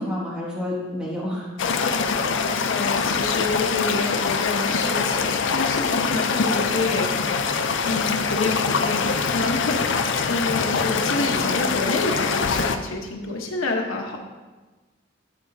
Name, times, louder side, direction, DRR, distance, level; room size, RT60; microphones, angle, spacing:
voice 1, 0.0-1.5 6.0-6.2, left 1 dB, 5° right, -6 dB, 1.4 m, -29 dB
sound 1, 1.6-12.8, left 5 dB, 65° left, 0.5 m, -24 dB
voice 2, 1.9-2.4 2.7-7.1 7.4-14.2, left 3 dB, 85° left, 1 dB, 1.1 m, -28 dB
12.5 x 4.9 x 2.7 m, 1.2 s
head